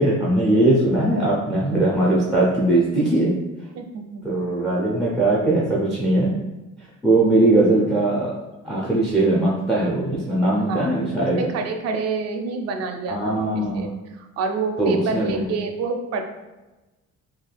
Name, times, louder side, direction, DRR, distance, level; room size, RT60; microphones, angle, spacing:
voice 1, 0.0-3.3 4.2-6.3 7.0-8.3 8.6-11.4 13.1-13.9 14.8-15.5, right 2 dB, ahead, -6 dB, 0.4 m, -20 dB
voice 2, 3.7-4.4 10.7-10.9 11.4-13.5 13.7-13.9 14.2-16.2, right 4 dB, 55° right, 5 dB, 0.4 m, -27 dB
3.4 x 2.3 x 2.2 m, 1.1 s
cardioid pair, 135°, 29 cm